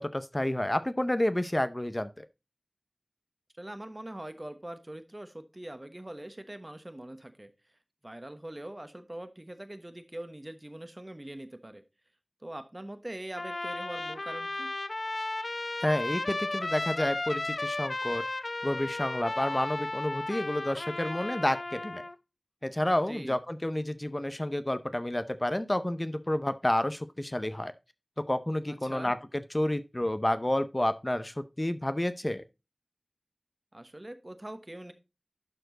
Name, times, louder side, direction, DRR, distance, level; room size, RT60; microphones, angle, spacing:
voice 1, 0.1-2.2 15.8-18.2 18.6-22.0 22.6-27.7 28.3-29.2 29.5-32.4, left 1 dB, 30° left, 0.6 m, -30 dB
voice 2, 3.6-7.5 8.0-11.8 12.4-14.7 23.0-23.4 28.7-29.1 33.7-34.9, right 1 dB, 35° right, 1.1 m, -43 dB
Trumpet, 13.4-22.1, left 2 dB, 75° left, 0.3 m, -34 dB
11.5 x 4.5 x 3.9 m
wide cardioid pair, 45°, 0 cm